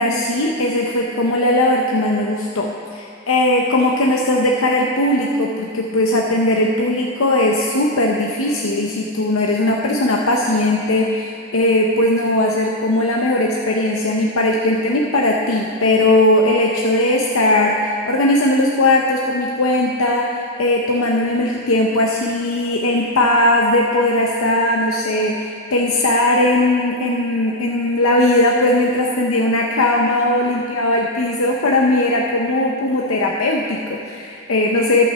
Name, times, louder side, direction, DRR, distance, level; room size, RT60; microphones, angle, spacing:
voice 1, 0.0-35.1, left 1 dB, 85° left, -1 dB, 0.8 m, -18 dB
12.0 x 6.1 x 7.2 m, 2.4 s
head